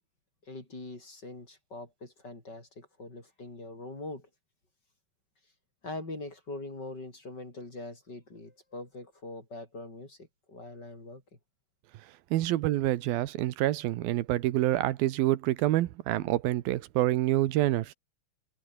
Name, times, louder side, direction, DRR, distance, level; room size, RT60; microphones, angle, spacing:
voice 1, 0.5-4.3 5.8-11.2, left 2 dB, 25° left, 6.7 m, -43 dB
voice 2, 12.3-17.9, right 15 dB, 85° right, 2.9 m, -27 dB
omnidirectional pair, 4.1 m